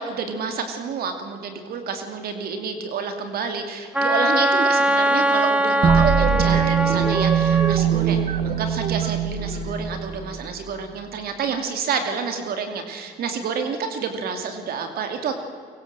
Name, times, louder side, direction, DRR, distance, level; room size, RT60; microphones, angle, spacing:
voice 1, 0.0-15.3, right 5 dB, 65° right, 6 dB, 2.7 m, -29 dB
Wind instrument woodwind instrument, 3.9-7.8, right 1 dB, 5° right, 1.7 m, -21 dB
sound 1, 5.8-10.5, right 8 dB, 40° right, 1.5 m, -21 dB
24.0 x 22.5 x 7.6 m, 2.2 s
cardioid pair, 110°, 17 cm